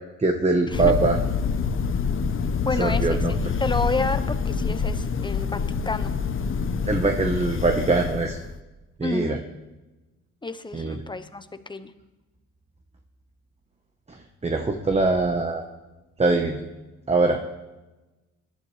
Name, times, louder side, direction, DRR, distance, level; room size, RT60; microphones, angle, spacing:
voice 1, 0.2-1.2 2.8-3.5 6.9-8.4 9.0-9.4 10.7-11.0 14.1-15.6 16.2-16.6 17.1-17.4, right 3 dB, 20° right, 4 dB, 1.2 m, -23 dB
Thunder, 0.7-8.6, left 5 dB, 45° left, 0.9 m, -26 dB
voice 2, 2.6-3.2 3.6-5.6 5.8-6.1 9.0-9.4 10.4-11.9, left 3 dB, 15° left, 10 dB, 1.0 m, -30 dB
20.0 x 11.5 x 3.3 m, 1.1 s
cardioid pair, 90°, 30 cm